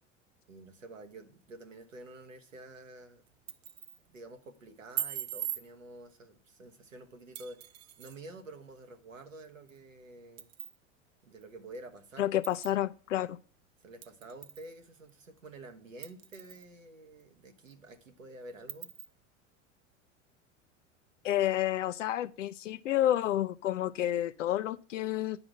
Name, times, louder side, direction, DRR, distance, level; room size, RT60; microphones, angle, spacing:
voice 1, 0.5-3.2 4.1-10.5 11.2-12.3 13.8-18.9, right 2 dB, 85° right, 1.3 m, -49 dB
sound 1, 3.3-4.0 5.0-5.6 7.4-8.2 9.7-9.8 10.4-10.8 11.4-11.5 12.4-12.8 14.0-14.7 15.1-15.2 16.0-16.7 17.2-17.3 17.7-17.8 18.7-19.1, right 10 dB, 55° right, 0.9 m, -40 dB
voice 2, 12.2-13.4 21.2-25.4, left 12 dB, 70° left, 0.5 m, -30 dB
9.7 x 4.8 x 6.1 m
figure-of-eight pair, 80°, 38 cm